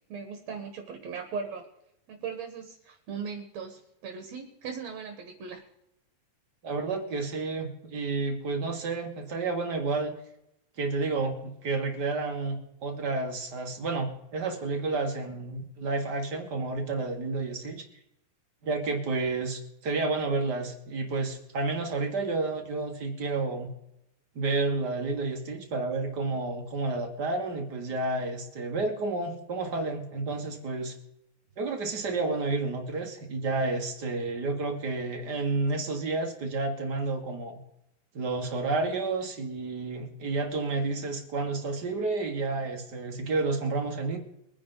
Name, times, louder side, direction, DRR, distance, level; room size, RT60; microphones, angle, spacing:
voice 1, 0.0-1.7 2.1-5.6, right 6 dB, 60° right, 4 dB, 2.4 m, -38 dB
voice 2, 6.6-10.1 10.8-17.8 18.6-23.7 24.3-30.9 31.6-37.6 38.1-44.2, right 3 dB, 40° right, 3 dB, 1.5 m, -30 dB
23.0 x 9.8 x 3.9 m, 0.83 s
omnidirectional pair, 4.0 m